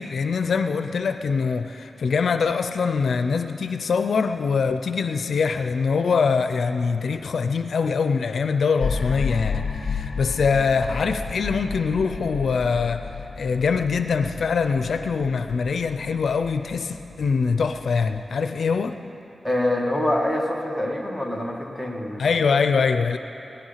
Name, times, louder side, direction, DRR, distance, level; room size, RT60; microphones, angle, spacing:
voice 1, 0.0-13.1 13.4-19.0 22.2-23.2, left 5 dB, 80° left, 8 dB, 0.5 m, -23 dB
sound 1, 8.8-18.2, left 5 dB, 55° left, 1.3 m, -32 dB
voice 2, 19.4-22.3, left 1 dB, ahead, -1 dB, 1.9 m, -25 dB
17.5 x 12.5 x 5.7 m, 3.0 s
wide cardioid pair, 85°, 0 cm